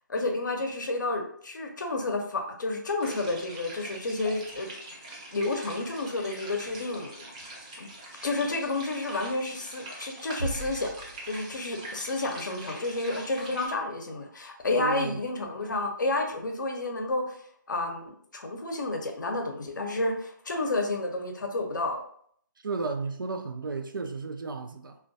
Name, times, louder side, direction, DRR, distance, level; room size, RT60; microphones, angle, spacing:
voice 1, 0.1-4.7 5.3-7.3 7.8-7.9 8.2-10.9 11.2-17.4 17.7-22.0, left 2 dB, 65° left, 0.6 m, -30 dB
sound 1, 3.0-13.7, right 1 dB, 20° right, 0.4 m, -43 dB
sound 2, 10.4-12.0, right 3 dB, 70° right, 0.8 m, -37 dB
voice 2, 14.8-15.2 22.6-25.0, right 4 dB, 85° right, 0.4 m, -33 dB
2.2 x 2.2 x 2.6 m
figure-of-eight pair, 160°, 11 cm